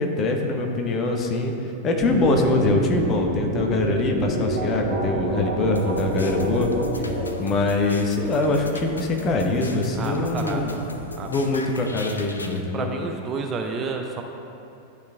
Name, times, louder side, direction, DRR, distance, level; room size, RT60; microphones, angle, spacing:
voice 1, 0.0-1.5 1.8-6.7 7.4-10.7 11.3-12.9, left 2 dB, 30° left, 2 dB, 0.8 m, -23 dB
sound 1, 2.0-7.2, right 1 dB, 80° right, 1.6 m, -27 dB
sound 2, 5.7-12.6, left 2 dB, 80° left, 0.4 m, -38 dB
voice 2, 9.9-10.8 11.2-11.3 12.7-14.2, right 4 dB, 25° right, 4 dB, 0.5 m, -30 dB
11.0 x 4.0 x 3.3 m, 2.7 s
figure-of-eight pair, 90°, 0 cm